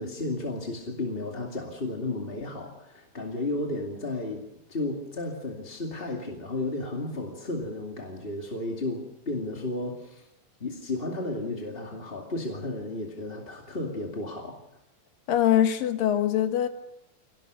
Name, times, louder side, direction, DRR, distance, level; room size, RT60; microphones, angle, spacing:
voice 1, 0.0-10.3 10.6-14.6, left 2 dB, 20° left, 0 dB, 2.0 m, -33 dB
voice 2, 15.3-16.7, left 11 dB, 75° left, 7 dB, 3.1 m, -23 dB
25.0 x 18.0 x 6.7 m, 0.83 s
omnidirectional pair, 4.1 m